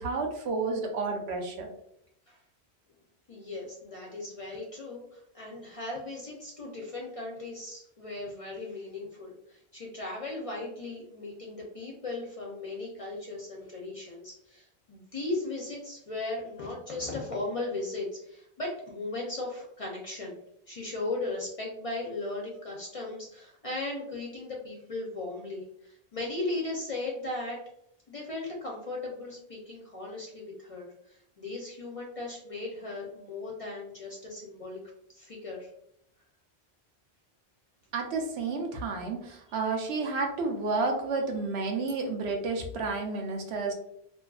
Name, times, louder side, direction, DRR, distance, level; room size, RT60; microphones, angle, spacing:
voice 1, 0.0-1.7 37.9-43.7, right 3 dB, 85° right, 2 dB, 0.9 m, -31 dB
voice 2, 3.3-20.4 20.7-27.6 28.1-34.8 35.1-35.7, left 2 dB, 45° left, -2 dB, 0.5 m, -37 dB
2.6 x 2.3 x 2.2 m, 0.72 s
omnidirectional pair, 1.1 m